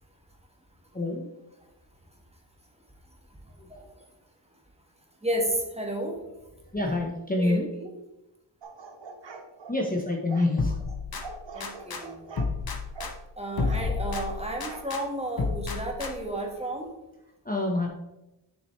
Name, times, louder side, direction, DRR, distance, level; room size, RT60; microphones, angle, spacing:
voice 1, 0.9-1.3 3.6-3.7 6.7-7.7 9.7-10.8 17.4-17.9, left 2 dB, 20° left, 0 dB, 1.0 m, -27 dB
voice 2, 5.2-6.2 7.4-7.6 11.5-12.2 13.3-16.9, right 1 dB, 15° right, 0 dB, 1.6 m, -32 dB
sound 1, 8.6-9.8 10.3-10.5 11.2-12.5 12.9-13.2 13.7-14.9 15.4-15.5, right 4 dB, 75° right, 0.9 m, -43 dB
sound 2, 10.6-12.0 12.4-15.0 15.4-16.4, left 4 dB, 55° left, 0.9 m, -31 dB
7.6 x 6.1 x 3.2 m, 0.94 s
wide cardioid pair, 65°, 45 cm